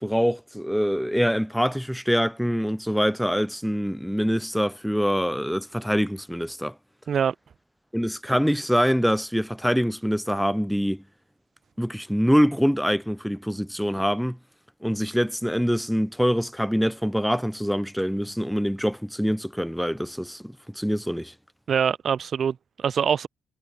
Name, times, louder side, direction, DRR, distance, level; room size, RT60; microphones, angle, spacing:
voice 1, 0.0-6.7 7.9-11.0 11.8-14.4 14.8-21.3, equal, ahead, 0.4 m, -24 dB
voice 2, 21.7-23.3, right 7 dB, 50° right, 0.6 m, -24 dB
hypercardioid pair, 45°, 0 cm